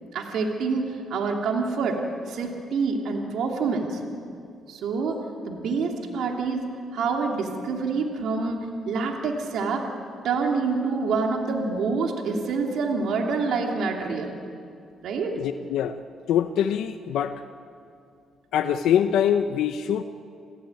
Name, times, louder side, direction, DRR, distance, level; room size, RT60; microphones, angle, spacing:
voice 1, 0.1-4.0 4.7-5.2 5.5-6.7 6.9-9.9 10.2-14.3 15.0-15.4, right 4 dB, 75° right, 2 dB, 2.8 m, -27 dB
voice 2, 15.3-16.0 16.3-17.4 18.5-20.0, left 9 dB, 80° left, 8 dB, 0.8 m, -24 dB
29.0 x 15.0 x 9.1 m, 2.4 s
cardioid pair, 90°, 0 cm